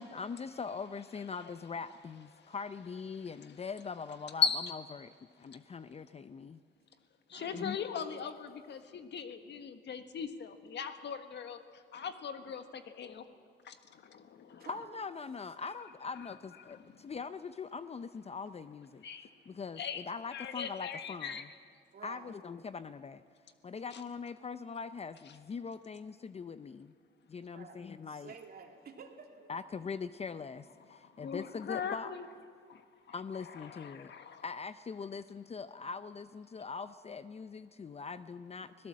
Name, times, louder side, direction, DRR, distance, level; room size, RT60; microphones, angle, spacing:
voice 1, 0.0-6.6 7.5-7.8 14.7-19.0 19.5-21.5 22.0-23.2 23.6-26.9 27.3-28.3 29.5-32.1 33.1-34.1 34.4-38.9, left 5 dB, 30° left, 12 dB, 0.6 m, -42 dB
voice 2, 4.4-4.7 7.3-13.2 13.6-14.7 16.6-17.1 19.0-19.3 19.8-20.0 20.3-21.4 23.9-24.0 30.9-32.2 32.7-32.8 33.1-34.4, left 6 dB, 60° left, 8 dB, 1.5 m, -39 dB
voice 3, 7.3-7.8 14.6-15.0 21.9-22.3 27.5-27.8 28.1-29.5, right 5 dB, 50° right, 2 dB, 2.9 m, -51 dB
24.5 x 17.5 x 7.5 m, 2.1 s
cardioid pair, 90°, 20 cm